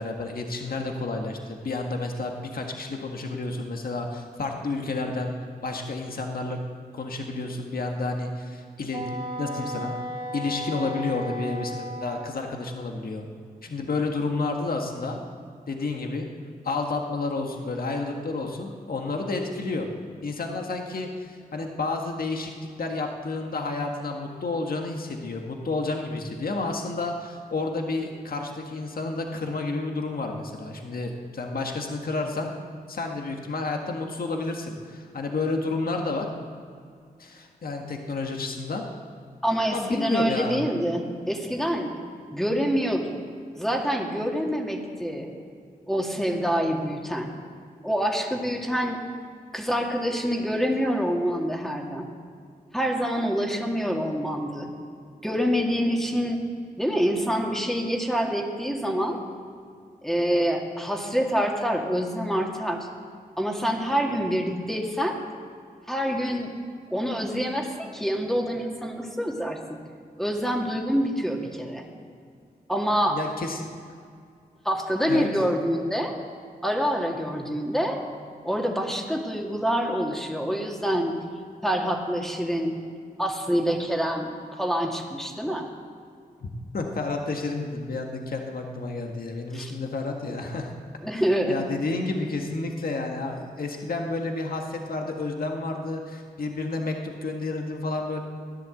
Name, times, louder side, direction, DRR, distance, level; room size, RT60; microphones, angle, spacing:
voice 1, 0.0-5.3 5.6-6.6 6.9-9.0 9.4-9.9 10.3-13.3 13.6-15.2 15.7-16.3 16.6-19.9 20.2-32.5 32.9-36.3 37.2-38.9 39.7-40.7 73.1-73.6 75.1-75.3 86.4-90.7 91.5-98.2, left 3 dB, 65° left, 2 dB, 1.6 m, -30 dB
Wind instrument woodwind instrument, 8.9-12.4, equal, 35° right, 3.2 m, -35 dB
voice 2, 39.4-41.9 42.3-43.2 43.6-45.3 45.9-47.3 47.8-49.0 49.5-52.1 52.7-54.7 55.2-56.4 56.8-59.2 60.0-62.9 63.4-65.2 65.9-66.5 66.9-69.8 70.2-71.8 72.7-73.2 74.6-76.1 76.6-78.0 78.4-81.2 81.6-82.8 83.2-85.7 89.5-89.7 91.0-91.6, equal, ahead, 0 dB, 2.3 m, -26 dB
16.0 x 10.5 x 7.8 m, 2.2 s
cardioid pair, 70°, 16 cm